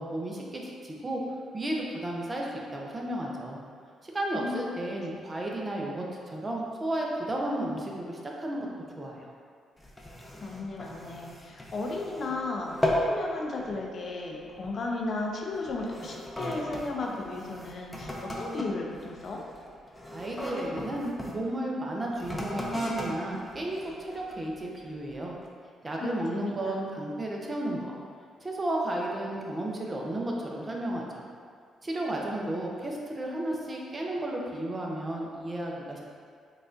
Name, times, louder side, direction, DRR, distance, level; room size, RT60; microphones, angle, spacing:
voice 1, 0.0-3.6 4.0-8.7 9.0-9.3 20.1-25.3 25.8-28.0 28.4-31.2 31.8-36.0, right 1 dB, 30° right, -2 dB, 0.6 m, -33 dB
voice 2, 4.3-4.8 5.1-5.3 10.4-19.4 26.0-26.8, left 3 dB, 55° left, -1 dB, 0.5 m, -35 dB
sound 1, 9.8-12.4 12.7-13.2 13.6-13.9 14.6-14.8 15.5-21.4 22.1-24.5 25.1-25.2, equal, 15° left, 0.7 m, -35 dB
4.6 x 2.4 x 2.6 m, 2.1 s
supercardioid pair, 55°, 0 cm